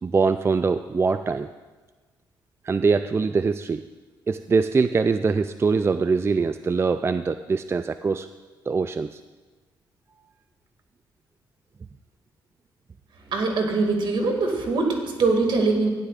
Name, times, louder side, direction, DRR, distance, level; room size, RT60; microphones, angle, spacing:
voice 1, 0.0-1.5 2.6-3.8 4.3-8.3 8.7-9.2, right 4 dB, 30° right, 11 dB, 0.3 m, -23 dB
voice 2, 13.2-15.9, right 3 dB, 65° right, 3 dB, 2.2 m, -22 dB
15.5 x 11.0 x 2.5 m, 1.3 s
supercardioid pair, 65°, 9 cm